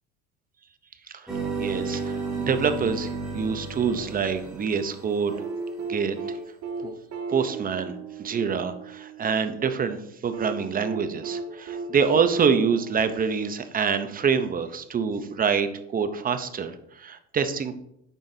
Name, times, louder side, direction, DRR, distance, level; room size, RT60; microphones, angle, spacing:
voice 1, 1.1-5.3 5.9-6.4 6.8-6.9 7.3-17.7, right 6 dB, 25° right, 9 dB, 0.6 m, -26 dB
sound 1, 1.3-5.5, right 4 dB, ahead, 2.2 m, -33 dB
sound 2, 5.3-9.4 10.3-13.9 15.3-15.4, right 4 dB, 50° right, 1.9 m, -36 dB
9.0 x 5.9 x 2.7 m, 0.76 s
cardioid pair, 120°, 34 cm